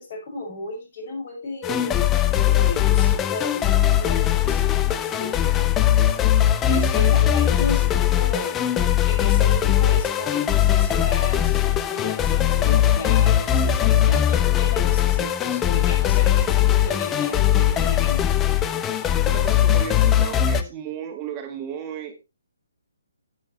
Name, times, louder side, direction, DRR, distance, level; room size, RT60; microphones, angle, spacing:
voice 1, 0.0-2.0 2.4-5.7 6.7-8.7 9.1-18.2, left 2 dB, 50° left, 1 dB, 5.9 m, -34 dB
sound 1, 1.6-20.6, left 11 dB, 15° left, 0.6 m, -20 dB
voice 2, 19.2-22.2, right 8 dB, 25° right, 4 dB, 1.6 m, -34 dB
11.0 x 8.8 x 3.1 m, 0.25 s
figure-of-eight pair, 140°, 0 cm